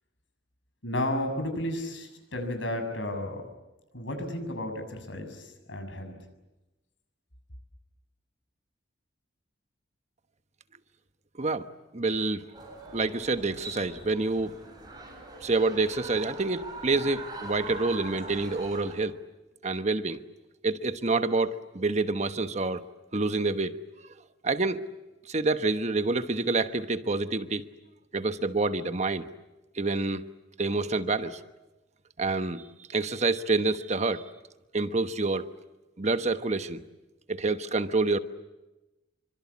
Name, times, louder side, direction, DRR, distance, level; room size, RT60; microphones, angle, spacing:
voice 1, 0.8-3.4 3.9-6.2, left 1 dB, 75° left, 6 dB, 6.9 m, -33 dB
voice 2, 11.9-12.4 12.9-14.5 15.4-19.2 19.6-20.2 20.6-22.8 23.1-23.7 24.4-24.8 25.3-27.6 28.1-29.3 29.7-30.2 30.6-31.4 32.2-34.3 34.7-35.5 36.0-36.8 37.3-38.2, right 3 dB, 35° right, 9 dB, 1.2 m, -27 dB
sound 1, 12.5-18.9, right 2 dB, 20° right, 7.9 m, -42 dB
27.5 x 25.0 x 8.6 m, 1.0 s
head